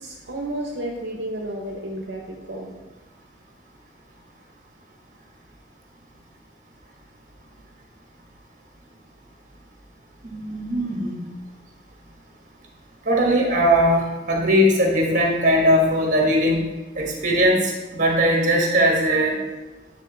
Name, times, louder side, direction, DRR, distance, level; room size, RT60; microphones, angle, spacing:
voice 1, 0.0-2.7, right 1 dB, 70° right, -1 dB, 0.8 m, -32 dB
voice 2, 10.2-11.2 13.0-16.6 16.9-19.4, equal, 45° right, 0 dB, 1.4 m, -19 dB
9.0 x 3.7 x 3.9 m, 1.1 s
head